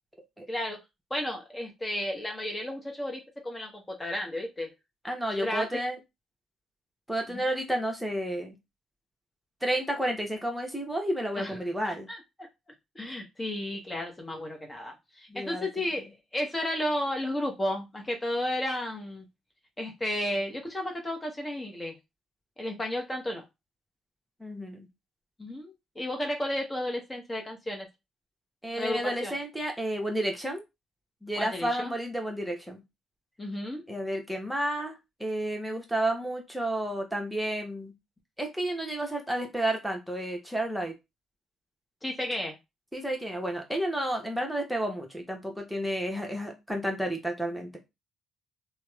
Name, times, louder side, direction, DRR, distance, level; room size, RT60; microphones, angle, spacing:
voice 1, 0.5-0.8 1.1-4.7 5.4-5.6 7.3-7.4 11.4-11.6 11.8-12.2 12.9-19.2 19.8-21.9 22.6-23.4 25.4-27.9 28.8-29.3 31.4-31.9 33.4-33.8 42.0-42.5, left 1 dB, 20° left, 2 dB, 0.8 m, -33 dB
voice 2, 5.0-6.0 7.1-8.5 9.6-12.1 15.3-15.7 24.4-24.9 28.6-30.6 31.2-32.8 33.9-37.9 38.4-40.9 42.9-47.8, right 1 dB, 5° right, 2 dB, 0.9 m, -31 dB
2.8 x 2.1 x 2.4 m, 0.22 s
hypercardioid pair, 50°, 0 cm